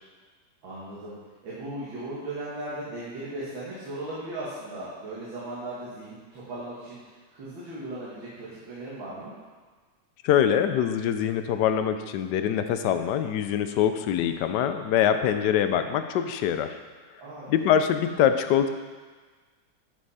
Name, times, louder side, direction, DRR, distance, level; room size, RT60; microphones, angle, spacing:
voice 1, 0.6-1.2 1.4-9.3 14.1-14.3 17.2-17.7, right 1 dB, 75° right, -8 dB, 2.4 m, -37 dB
voice 2, 10.2-16.8 17.5-18.7, left 9 dB, 75° left, 9 dB, 1.1 m, -24 dB
10.5 x 5.6 x 4.2 m, 1.4 s
omnidirectional pair, 2.1 m